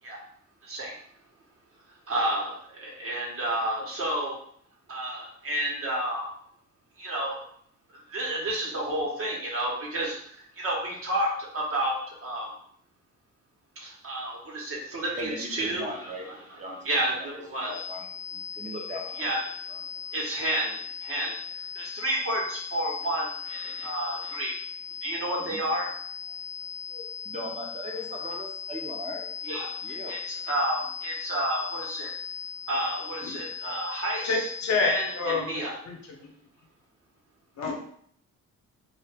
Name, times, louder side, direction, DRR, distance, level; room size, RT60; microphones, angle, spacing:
voice 1, 2.1-4.3 4.9-6.3 7.0-7.4 8.1-10.2 10.6-12.6 13.8-15.9 16.2-16.3 16.8-17.7 19.2-19.4 20.1-21.3 21.7-24.5 25.0-25.9 29.4-29.7 30.1-32.1 32.7-34.5 34.7-35.7, right 1 dB, 45° right, -3 dB, 1.2 m, -30 dB
voice 2, 15.2-16.3 16.6-19.2 19.7-19.8 23.4-23.8 25.5-25.6 26.9-29.3 29.8-30.1, equal, 25° right, 0 dB, 0.8 m, -39 dB
sound 1, 17.7-35.4, left 7 dB, 40° left, 0.4 m, -38 dB
voice 3, 34.2-35.5 35.9-36.0 37.6-37.7, left 4 dB, 65° left, 1 dB, 0.8 m, -27 dB
2.6 x 2.5 x 3.5 m, 0.63 s
cardioid pair, 90°, 30 cm